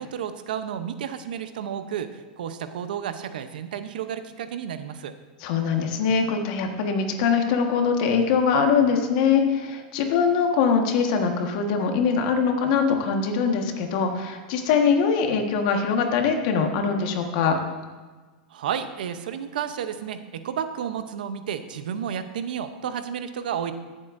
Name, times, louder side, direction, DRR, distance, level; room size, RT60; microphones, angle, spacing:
voice 1, 0.0-5.1 18.5-23.7, right 8 dB, 85° right, 10 dB, 0.7 m, -32 dB
voice 2, 5.4-17.6, left 6 dB, 60° left, 4 dB, 1.4 m, -22 dB
16.5 x 7.6 x 2.6 m, 1.3 s
supercardioid pair, 135°, 5 cm